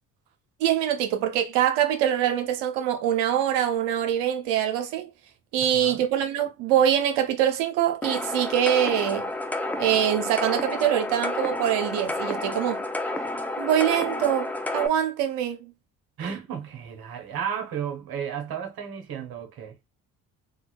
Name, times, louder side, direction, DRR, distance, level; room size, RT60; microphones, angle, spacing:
voice 1, 0.6-5.1 5.5-9.3 9.8-12.8 13.6-15.7, right 10 dB, 80° right, 0.8 m, -24 dB
voice 2, 5.6-6.0 16.2-19.8, right 8 dB, 60° right, 1.1 m, -33 dB
sound 1, 8.0-14.9, left 2 dB, 5° left, 0.5 m, -30 dB
3.8 x 2.3 x 2.2 m
hypercardioid pair, 50°, 41 cm